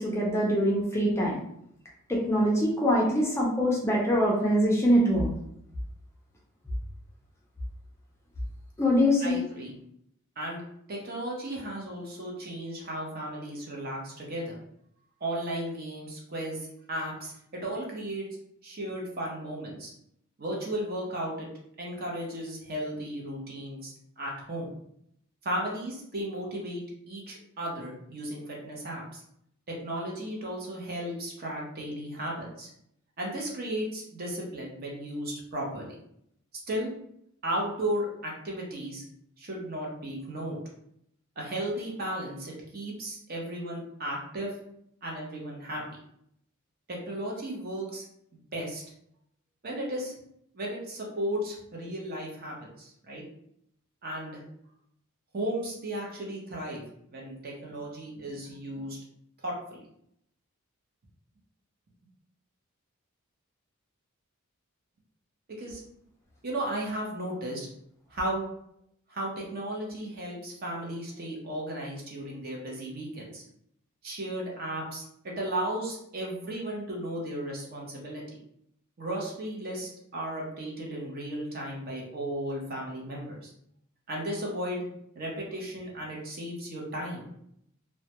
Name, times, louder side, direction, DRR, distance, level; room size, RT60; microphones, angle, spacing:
voice 1, 0.0-1.4 2.1-5.3 8.8-9.4, equal, 10° left, -3 dB, 0.4 m, -24 dB
voice 2, 9.2-9.7 10.4-10.6 10.9-14.6 15.2-18.3 18.6-19.9 20.4-21.5 21.8-24.7 25.4-29.2 29.7-32.7 33.2-35.9 36.7-36.9 37.4-39.0 39.4-40.6 41.4-44.5 45.0-45.8 46.9-48.0 48.5-48.8 49.6-50.1 50.5-53.2 54.0-54.4 55.3-56.8 57.1-59.0 59.4-59.8 65.5-65.8 66.4-67.7 68.1-68.5 69.1-73.4 74.0-78.2 79.0-83.5 84.1-84.8 85.1-87.3, right 1 dB, 45° right, -2 dB, 0.7 m, -35 dB
2.2 x 2.1 x 2.8 m, 0.73 s
head